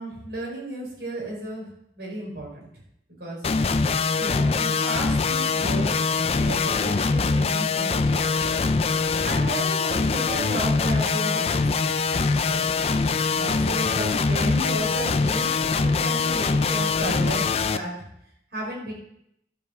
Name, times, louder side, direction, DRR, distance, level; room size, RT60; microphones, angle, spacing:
voice 1, 0.0-1.7 2.0-2.7 3.2-3.4 4.2-6.0 6.3-8.6 9.2-11.9 12.5-12.7 13.4-17.9 18.5-18.9, right 1 dB, 75° right, -3 dB, 4.9 m, -33 dB
sound 1, 3.4-17.8, left 4 dB, 35° left, 0.4 m, -23 dB
11.5 x 5.4 x 7.2 m, 0.74 s
head